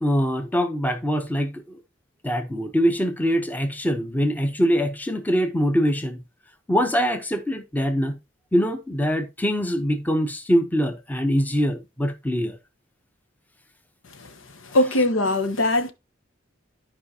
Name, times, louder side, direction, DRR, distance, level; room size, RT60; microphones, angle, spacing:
voice 1, 0.0-1.8 2.2-6.2 6.7-8.2 8.5-12.6, equal, 10° left, 0.9 m, -23 dB
voice 2, 14.7-15.9, left 1 dB, 75° left, 1.2 m, -20 dB
12.5 x 4.9 x 2.9 m
head